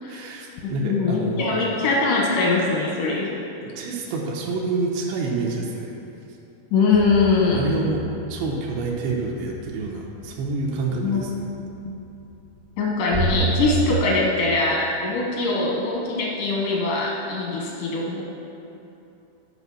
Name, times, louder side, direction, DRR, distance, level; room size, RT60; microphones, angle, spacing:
voice 1, 0.1-1.5 3.6-5.9 7.5-11.3, right 3 dB, 80° right, -2 dB, 3.2 m, -28 dB
voice 2, 0.6-3.3 6.7-7.7 11.0-11.3 11.8-11.9 12.8-18.2, left 3 dB, 80° left, -2 dB, 1.8 m, -22 dB
sound 1, 6.9-11.4 11.7-11.8 12.3-12.5 13.1-14.0, right 3 dB, 65° right, 1.1 m, -29 dB
9.8 x 5.2 x 6.9 m, 2.9 s
omnidirectional pair, 5.1 m